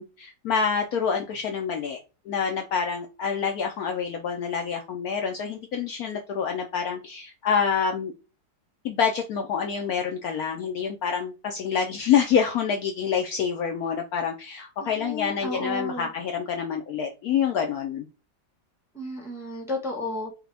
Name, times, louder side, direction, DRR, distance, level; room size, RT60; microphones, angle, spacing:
voice 1, 0.0-2.0 2.3-8.1 8.8-18.1, left 7 dB, 70° left, 3 dB, 0.9 m, -27 dB
voice 2, 14.8-16.1 18.9-20.4, left 1 dB, ahead, 0 dB, 0.9 m, -33 dB
4.9 x 2.2 x 3.3 m, 0.31 s
omnidirectional pair, 1.9 m